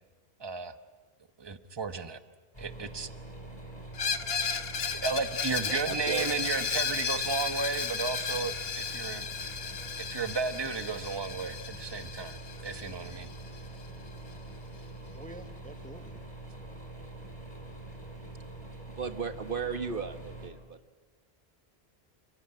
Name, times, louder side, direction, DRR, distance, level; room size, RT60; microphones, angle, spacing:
voice 1, 0.4-0.7 1.4-2.2 2.6-3.1 4.9-9.3 10.0-13.3, right 4 dB, 25° right, 11 dB, 1.0 m, -34 dB
sound 1, 2.5-20.5, right 2 dB, 25° left, 5.8 m, -45 dB
Screech, 3.9-13.6, left 6 dB, 70° left, 1.3 m, -34 dB
voice 2, 5.6-6.3 19.0-20.8, right 5 dB, 55° right, 10 dB, 1.4 m, -35 dB
voice 3, 15.1-16.2, right 1 dB, 10° left, 10 dB, 0.9 m, -47 dB
28.5 x 16.5 x 9.8 m, 1.3 s
omnidirectional pair, 1.1 m